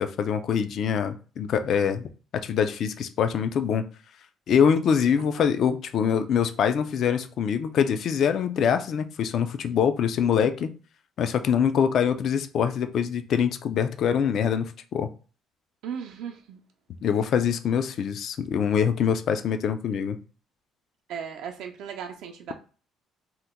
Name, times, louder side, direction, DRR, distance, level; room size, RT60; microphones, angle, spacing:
voice 1, 0.0-2.0 2.4-3.8 4.5-10.7 11.2-15.1 17.0-20.2, left 7 dB, 50° left, 0.3 m, -24 dB
voice 2, 5.2-5.5 15.8-16.6 21.1-22.5, right 7 dB, 75° right, 0.4 m, -37 dB
2.8 x 2.1 x 3.5 m
cardioid pair, 140°, 0 cm